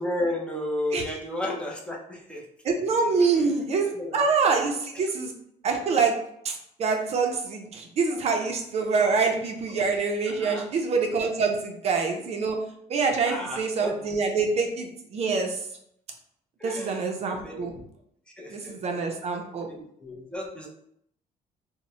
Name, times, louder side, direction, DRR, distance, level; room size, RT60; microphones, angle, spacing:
voice 1, 0.0-2.4 3.2-3.4 4.0-4.7 9.0-9.3 10.3-10.7 13.3-14.0 16.6-17.9 18.4-18.8 19.6-20.7, left 1 dB, 5° left, -2 dB, 0.5 m, -33 dB
voice 2, 2.6-5.3 5.6-6.1 6.4-12.6 12.9-15.6 16.6-17.7 18.5-19.7, right 4 dB, 45° right, 3 dB, 0.4 m, -25 dB
2.9 x 2.0 x 2.6 m, 0.72 s
cardioid pair, 120°, 15 cm